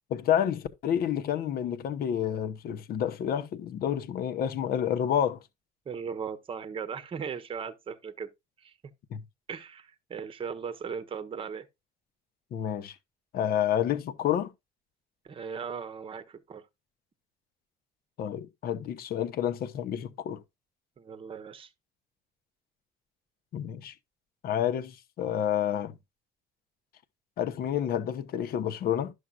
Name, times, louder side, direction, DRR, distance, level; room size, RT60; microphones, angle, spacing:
voice 1, 0.1-5.4 9.1-9.2 12.5-12.9 13.3-14.5 18.2-20.4 23.5-23.9 24.4-25.9 27.4-29.1, left 9 dB, 65° left, 0.9 m, -29 dB
voice 2, 5.9-8.3 8.6-8.7 9.5-11.7 15.2-16.7 21.0-21.7, right 6 dB, 30° right, 0.9 m, -38 dB
11.0 x 6.4 x 2.3 m
cardioid pair, 110°, 17 cm